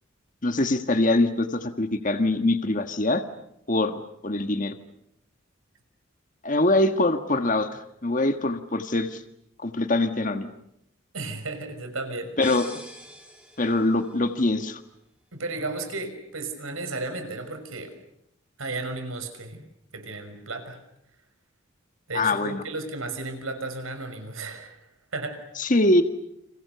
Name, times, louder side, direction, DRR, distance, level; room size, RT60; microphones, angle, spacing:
voice 1, 0.4-3.2 3.7-4.7 6.4-9.2 9.6-10.5 12.4-12.8 13.6-14.8 22.1-22.6 25.6-26.0, left 2 dB, 40° left, 8 dB, 1.6 m, -23 dB
voice 2, 11.1-12.3 15.3-17.9 18.6-19.6 19.9-20.8 22.1-24.8 25.1-25.4, right 2 dB, 90° right, 7 dB, 6.1 m, -34 dB
sound 1, 12.4-14.2, equal, 5° right, 5.0 m, -42 dB
30.0 x 28.0 x 6.9 m, 0.78 s
head